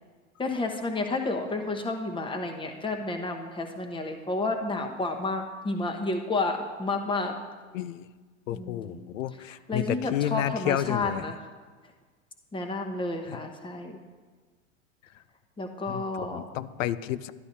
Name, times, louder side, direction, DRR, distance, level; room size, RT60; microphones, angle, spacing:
voice 1, 0.4-7.4 8.5-9.1 9.7-11.3 12.5-14.0 15.6-16.5, left 2 dB, 15° left, 4 dB, 1.0 m, -31 dB
voice 2, 7.7-8.0 8.5-11.2 13.3-13.4 15.9-17.3, left 12 dB, 85° left, 15 dB, 0.5 m, -31 dB
11.5 x 11.0 x 2.7 m, 1.4 s
hypercardioid pair, 105°, 38 cm